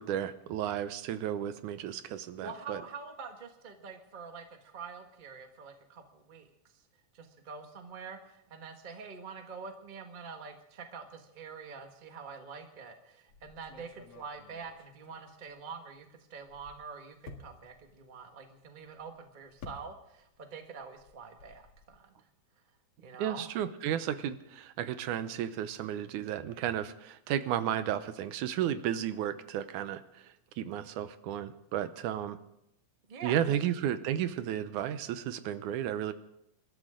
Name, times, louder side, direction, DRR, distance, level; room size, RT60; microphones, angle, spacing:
voice 1, 0.0-2.8 23.2-32.4 33.2-36.1, right 10 dB, 90° right, 12 dB, 2.3 m, -33 dB
voice 2, 2.4-6.5 6.7-6.8 7.1-22.3 23.0-23.4 33.1-33.6, right 5 dB, 30° right, 4 dB, 1.0 m, -46 dB
sound 1, 13.3-16.0 16.3-20.4 20.7-22.0, left 3 dB, 55° left, 2.6 m, -53 dB
27.5 x 13.0 x 3.8 m, 0.80 s
omnidirectional pair, 3.4 m